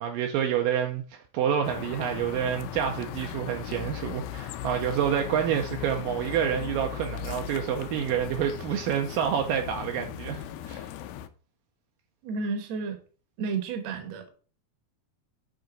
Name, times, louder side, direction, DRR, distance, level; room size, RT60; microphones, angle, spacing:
voice 1, 0.0-10.9, right 9 dB, 80° right, 2.2 m, -28 dB
sound 1, 1.6-11.3, left 11 dB, 85° left, 2.5 m, -38 dB
voice 2, 12.2-13.0 13.4-14.3, right 4 dB, 60° right, 1.8 m, -31 dB
8.0 x 3.8 x 5.1 m
omnidirectional pair, 4.3 m